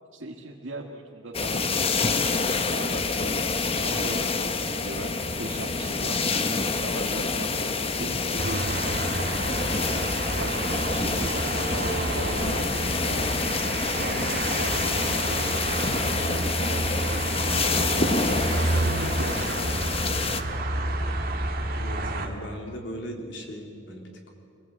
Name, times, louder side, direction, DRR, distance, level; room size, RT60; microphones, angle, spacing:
voice 1, 0.1-1.9 2.3-3.1 3.4-5.1 5.4-7.5 7.8-9.0 9.5-9.9 10.3-11.4 11.9-13.6 14.0-15.5 16.2-17.5 18.6-20.1, right 2 dB, 80° right, -1 dB, 1.9 m, -39 dB
sound 1, 1.3-20.4, left 4 dB, 30° left, 1.0 m, -27 dB
sound 2, 8.4-22.3, right 2 dB, 50° right, 2.0 m, -29 dB
voice 2, 21.7-24.3, equal, 65° left, 1 dB, 3.5 m, -38 dB
25.0 x 19.0 x 8.6 m, 2.6 s
head